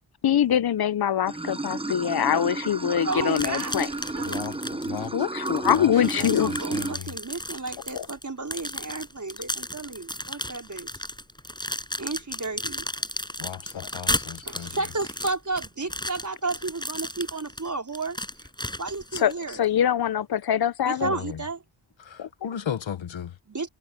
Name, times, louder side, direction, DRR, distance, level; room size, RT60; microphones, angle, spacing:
voice 1, 0.2-3.9 5.1-6.5 7.9-8.1 13.7-13.9 19.1-19.3 19.6-21.1 22.2-22.3, left 9 dB, 55° left, 0.7 m, -24 dB
Water / Sink (filling or washing), 1.3-6.9, right 2 dB, 10° right, 0.7 m, -32 dB
voice 2, 3.0-4.4 5.9-11.0 12.0-12.9 14.4-18.5 18.8-19.6 20.8-21.6 23.5-23.7, right 3 dB, 40° right, 4.3 m, -33 dB
sound 1, 3.1-5.1 5.5-19.7, left 1 dB, 10° left, 7.5 m, -34 dB
voice 3, 4.2-5.1 5.6-5.9 6.2-7.1 13.4-14.8 21.0-21.4 22.0-23.4, left 8 dB, 70° left, 1.2 m, -35 dB
wide cardioid pair, 75°, 47 cm